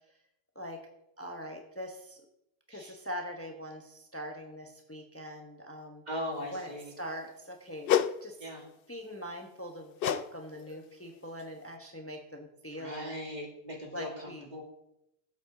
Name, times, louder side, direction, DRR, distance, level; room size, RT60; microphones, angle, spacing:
voice 1, 1.2-2.2 2.7-6.0 6.5-8.5 8.9-13.2 13.9-14.5, equal, 15° left, 3 dB, 1.1 m, -42 dB
voice 2, 6.1-6.9 8.4-8.6 12.7-14.6, left 1 dB, 45° right, -1 dB, 2.6 m, -39 dB
sound 1, 7.9-8.2 10.0-10.3 10.6-10.8 11.4-11.5, left 10 dB, 65° left, 0.7 m, -27 dB
16.5 x 8.1 x 3.9 m, 0.82 s
omnidirectional pair, 1.0 m